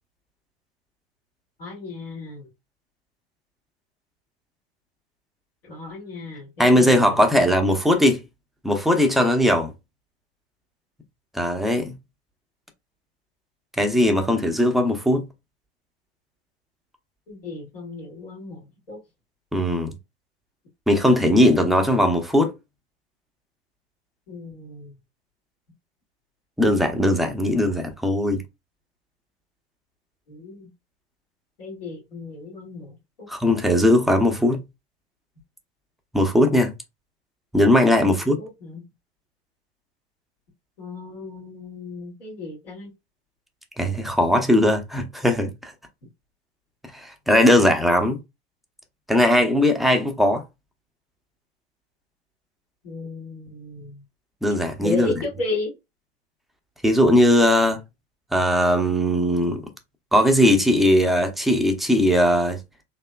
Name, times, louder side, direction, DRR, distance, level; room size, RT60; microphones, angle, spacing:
voice 1, 1.6-2.5 5.6-7.5 17.3-19.0 24.3-24.9 30.3-30.7 31.6-33.3 38.0-38.8 40.8-42.9 52.8-54.0 54.8-55.7, left 2 dB, 65° left, 2.2 m, -34 dB
voice 2, 6.6-8.2 8.6-9.7 11.3-12.0 13.8-15.2 19.5-19.9 20.9-22.5 26.6-28.4 33.3-34.6 36.1-36.7 37.5-38.4 43.8-45.7 46.9-48.2 49.1-50.4 54.4-55.1 56.8-57.8 58.3-59.6 60.1-62.6, left 1 dB, ahead, 0.7 m, -19 dB
4.3 x 2.7 x 2.2 m
figure-of-eight pair, 85°, 32 cm